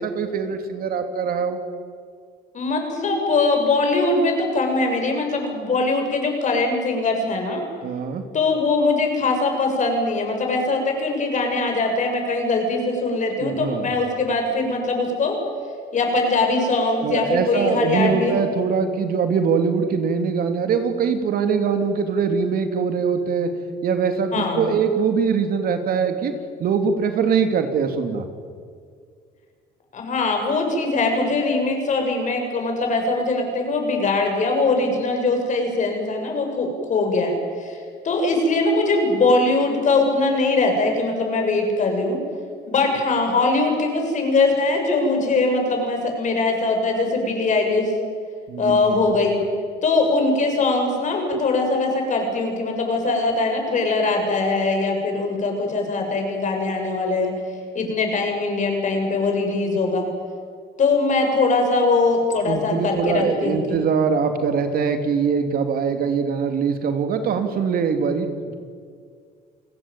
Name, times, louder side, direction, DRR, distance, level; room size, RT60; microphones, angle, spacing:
voice 1, 0.0-1.6 7.8-8.2 13.4-13.9 17.0-23.5 23.8-26.3 26.6-28.2 48.5-49.0 62.4-68.5, right 6 dB, 60° right, 7 dB, 2.9 m, -22 dB
voice 2, 2.5-7.6 8.3-15.4 15.9-18.3 24.3-24.7 29.9-37.8 38.0-42.2 42.7-47.9 48.6-49.4 49.8-57.3 57.7-60.1 60.8-63.8, left 3 dB, 45° left, 3 dB, 7.1 m, -21 dB
29.0 x 18.5 x 9.0 m, 2.1 s
cardioid pair, 110°, 17 cm